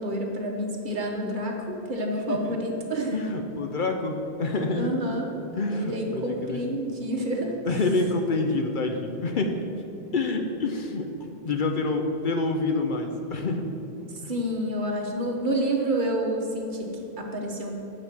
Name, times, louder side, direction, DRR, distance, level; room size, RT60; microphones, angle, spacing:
voice 1, 0.0-3.3 4.7-5.3 5.7-7.6 14.1-17.8, right 1 dB, 50° right, 1 dB, 1.2 m, -29 dB
voice 2, 3.1-4.9 5.6-6.6 7.7-9.6 10.1-13.7, left 3 dB, 55° left, 4 dB, 0.8 m, -27 dB
8.2 x 5.0 x 7.2 m, 3.0 s
omnidirectional pair, 1.1 m